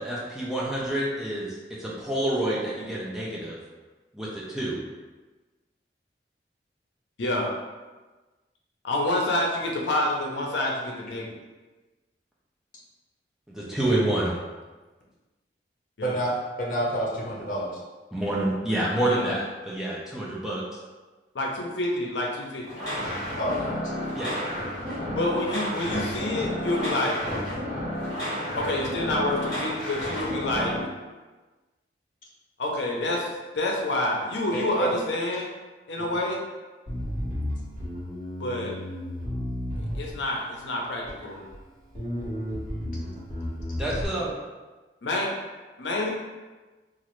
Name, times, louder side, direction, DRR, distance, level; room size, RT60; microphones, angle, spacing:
voice 1, 0.0-3.6 4.1-4.8 13.5-14.3 18.1-20.6 24.1-24.3 43.8-44.3, right 1 dB, 5° right, -7 dB, 0.4 m, -28 dB
voice 2, 8.8-11.3 16.0-16.2 18.9-19.3 21.3-22.6 25.2-27.2 28.5-30.7 32.6-33.3 33.5-35.5 35.9-36.4 38.4-38.8 39.8-41.4 45.0-45.3 45.8-46.1, left 1 dB, 85° left, -1 dB, 0.6 m, -28 dB
voice 3, 16.0-16.3 16.6-17.8 23.4-23.9 34.5-35.0 36.0-36.1, right 1 dB, 50° left, -4 dB, 0.8 m, -28 dB
sound 1, 22.6-30.8, equal, 20° left, 1.3 m, -31 dB
Bass guitar, 36.9-40.4 41.1-41.6 41.9-44.1, left 1 dB, 45° right, 1.3 m, -32 dB
3.0 x 2.4 x 3.0 m, 1.2 s
head